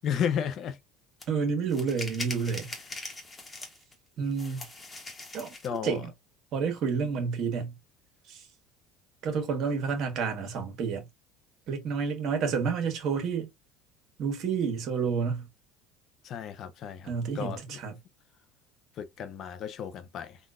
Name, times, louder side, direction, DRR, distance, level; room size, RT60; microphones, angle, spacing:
voice 1, 0.0-0.8 5.6-6.0 16.2-17.8 19.0-20.4, left 8 dB, 50° left, 0.5 m, -33 dB
sound 1, 1.2-1.3 1.7-3.9 4.3-5.8, left 2 dB, 20° left, 1.1 m, -41 dB
voice 2, 1.3-2.7 4.2-4.6 5.3-5.5 5.8-6.1 6.5-7.8 8.3-8.4 9.2-11.1 11.7-13.5 14.2-15.4 17.0-18.0, right 5 dB, 55° right, 1.3 m, -29 dB
3.8 x 2.4 x 2.4 m
supercardioid pair, 110°, 0 cm